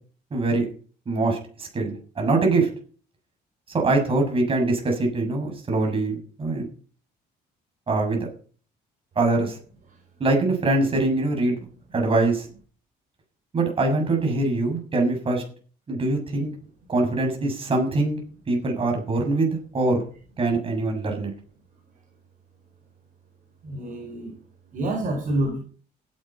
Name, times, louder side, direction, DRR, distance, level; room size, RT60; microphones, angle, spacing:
voice 1, 0.3-0.7 1.1-2.7 3.7-6.7 7.9-8.3 9.2-9.6 10.2-11.7 11.9-12.5 13.5-15.4 15.9-16.5 16.9-18.2 18.5-20.0 20.4-21.3, right 2 dB, 35° right, 2 dB, 7.1 m, -23 dB
voice 2, 23.6-24.3 24.7-25.6, right 1 dB, 50° right, 1 dB, 5.0 m, -27 dB
15.5 x 10.5 x 5.7 m, 0.42 s
cardioid pair, 110°, 17 cm